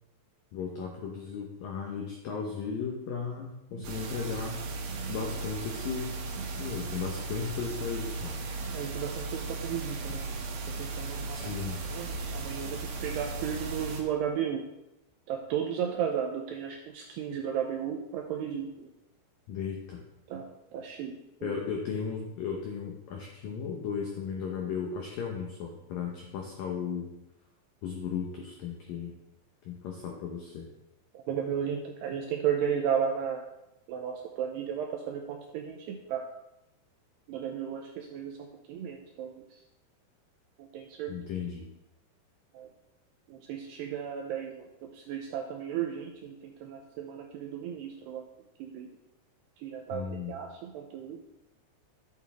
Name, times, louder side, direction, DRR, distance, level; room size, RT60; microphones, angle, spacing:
voice 1, 0.5-4.6 5.1-6.2 6.5-8.4 11.3-11.8 19.5-20.0 21.4-27.1 27.8-29.1 29.7-30.7 41.1-41.7 49.9-50.4, left 6 dB, 80° left, 0 dB, 2.0 m, -35 dB
sound 1, 3.8-14.0, right 3 dB, 70° right, 3.3 m, -36 dB
voice 2, 8.6-10.3 10.7-11.5 11.9-14.7 15.3-18.9 20.3-21.5 31.1-33.4 33.9-36.3 37.3-39.4 40.6-41.2 42.5-42.7 43.3-48.2 48.6-48.9 49.6-51.2, right 8 dB, 85° right, 2 dB, 2.4 m, -34 dB
11.5 x 8.4 x 3.6 m, 0.89 s
omnidirectional pair, 5.6 m